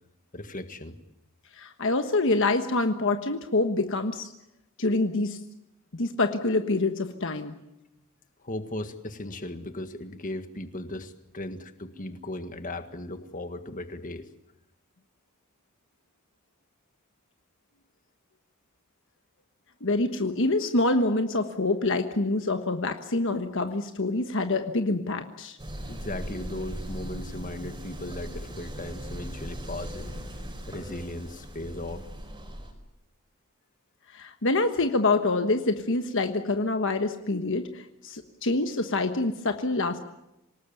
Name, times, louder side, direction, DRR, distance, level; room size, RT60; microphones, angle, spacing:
voice 1, 0.3-1.0 8.4-14.3 25.9-30.1 30.7-32.1, left 1 dB, 40° left, 8 dB, 1.7 m, -37 dB
voice 2, 1.5-4.3 4.8-5.4 5.9-7.5 19.8-25.6 34.1-40.0, left 2 dB, 60° left, 7 dB, 1.3 m, -26 dB
sound 1, 25.6-32.7, equal, 20° right, 4.8 m, -39 dB
26.5 x 18.5 x 9.1 m, 0.90 s
head